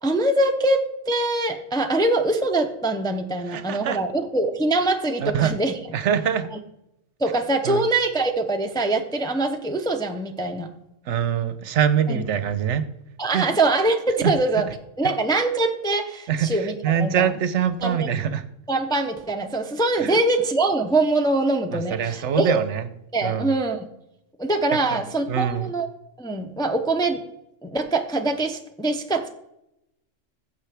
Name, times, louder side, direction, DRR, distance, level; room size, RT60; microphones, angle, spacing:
voice 1, 0.0-5.7 7.2-10.7 12.1-12.2 13.2-14.7 15.0-17.4 17.8-18.1 18.7-22.6 23.1-23.8 24.4-25.9 26.2-27.2 27.6-29.3, right 2 dB, 5° left, 4 dB, 0.5 m, -23 dB
voice 2, 3.5-4.0 5.2-5.5 5.9-6.5 7.7-7.8 11.1-12.9 13.3-13.5 16.3-18.4 20.0-20.2 21.7-22.8 23.2-23.5 24.7-25.0 25.3-25.7, right 8 dB, 70° right, 12 dB, 1.0 m, -24 dB
15.0 x 6.7 x 3.4 m, 0.84 s
omnidirectional pair, 1.3 m